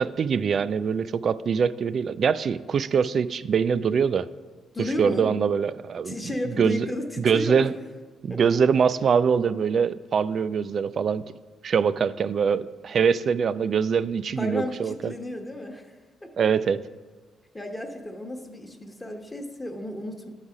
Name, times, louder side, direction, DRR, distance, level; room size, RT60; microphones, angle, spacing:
voice 1, 0.0-4.3 4.8-6.1 6.6-6.9 7.2-7.7 8.2-11.2 11.6-15.1 16.4-16.8, right 6 dB, 55° right, 15 dB, 0.3 m, -23 dB
voice 2, 4.7-5.3 6.0-7.7 8.3-8.4 14.4-15.9 16.2-16.3 17.5-20.3, left 1 dB, 15° left, 2 dB, 1.0 m, -33 dB
11.5 x 4.0 x 4.9 m, 1.3 s
cardioid pair, 90°, 0 cm